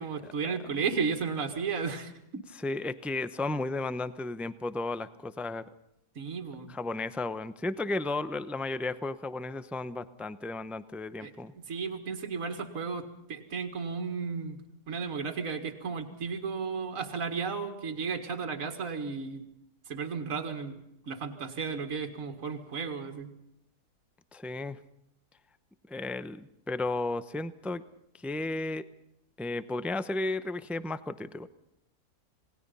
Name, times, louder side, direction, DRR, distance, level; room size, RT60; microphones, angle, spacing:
voice 1, 0.0-2.1 6.2-6.7 11.2-14.6 14.9-19.4 19.9-20.8 21.0-23.3, right 5 dB, 55° right, 5 dB, 2.3 m, -34 dB
voice 2, 2.6-5.6 6.7-11.5 24.3-24.8 25.9-27.8 28.2-28.8 29.4-31.5, left 2 dB, ahead, 13 dB, 0.4 m, -34 dB
28.5 x 19.5 x 5.5 m, 0.80 s
omnidirectional pair, 1.7 m